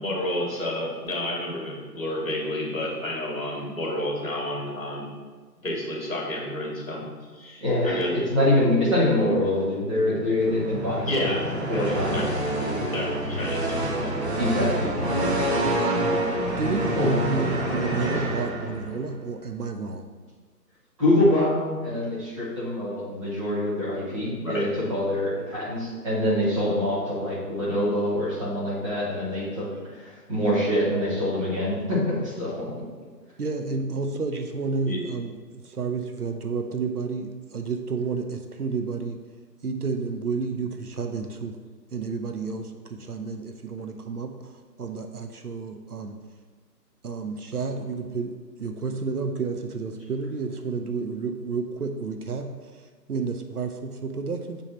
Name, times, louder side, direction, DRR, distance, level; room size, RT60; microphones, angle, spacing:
voice 1, 0.0-5.1 5.6-8.1 11.0-12.4 12.9-14.2 14.4-14.6 24.4-24.7 34.9-35.0, left 1 dB, 50° left, -2 dB, 2.4 m, -31 dB
voice 2, 7.6-8.0 8.3-11.3 11.7-12.2 12.6-12.8 14.4-14.9 16.9-17.1 18.1-18.2 21.0-29.6 29.9-32.5, left 1 dB, 20° right, -9 dB, 2.0 m, -25 dB
sound 1, 10.4-19.0, right 1 dB, 40° right, 1.4 m, -27 dB
voice 3, 16.6-20.0 33.4-35.4 35.6-39.2 39.6-41.6 41.9-46.2 47.0-54.6, right 4 dB, 65° right, 6 dB, 0.8 m, -31 dB
7.2 x 5.4 x 4.3 m, 1.4 s
figure-of-eight pair, 165°, 50 cm